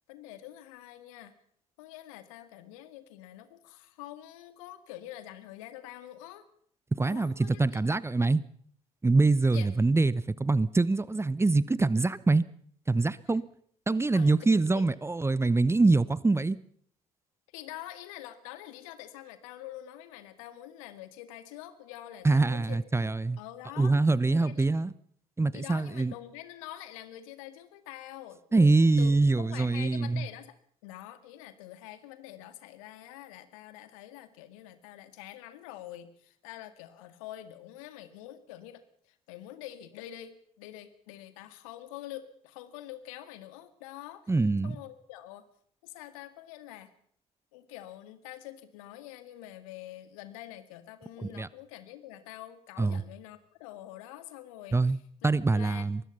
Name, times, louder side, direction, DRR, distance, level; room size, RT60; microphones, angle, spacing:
voice 1, 0.1-1.3 1.8-6.4 7.0-7.8 9.5-9.7 14.1-14.9 17.5-22.8 23.4-23.9 24.3-24.7 25.5-29.1 29.4-30.5 30.8-38.8 39.1-44.3 44.6-45.4 45.8-46.9 47.5-55.8, left 13 dB, 70° left, 1.9 m, -46 dB
voice 2, 7.0-8.4 9.0-12.4 12.9-13.5 13.9-16.6 22.2-23.4 23.8-24.9 25.4-26.1 28.5-30.3 44.3-44.8 51.2-51.5 52.8-53.0 54.7-55.0 55.2-56.0, right 3 dB, 15° right, 0.9 m, -24 dB
24.0 x 20.5 x 5.6 m
figure-of-eight pair, 50°, 18 cm